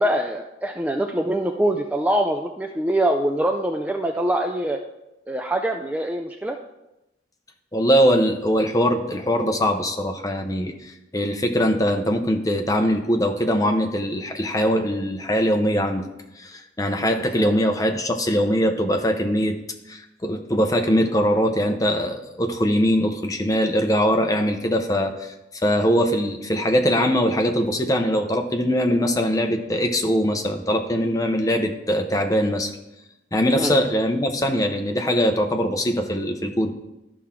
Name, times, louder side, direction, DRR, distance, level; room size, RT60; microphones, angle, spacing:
voice 1, 0.0-4.8 5.3-6.6 17.4-17.5 33.6-33.7, right 1 dB, 10° right, 3 dB, 0.4 m, -24 dB
voice 2, 7.7-16.0 16.4-19.6 19.9-25.3 25.6-32.7 33.3-36.7, equal, 20° left, 4 dB, 0.7 m, -22 dB
12.5 x 5.8 x 3.7 m, 0.93 s
head